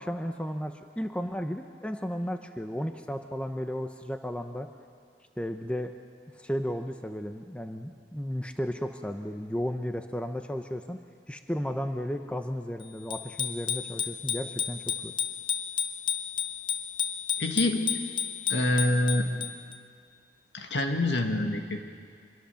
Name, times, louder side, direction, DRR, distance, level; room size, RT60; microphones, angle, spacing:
voice 1, 0.0-4.7 5.4-5.9 6.3-11.0 11.3-15.1, equal, 5° left, 6 dB, 0.8 m, -34 dB
Bicycle bell, 13.1-19.8, left 8 dB, 25° left, 1.0 m, -32 dB
voice 2, 17.4-18.0 18.5-19.3 20.5-21.8, left 1 dB, 70° left, 4 dB, 2.1 m, -26 dB
25.5 x 22.0 x 7.1 m, 2.1 s
head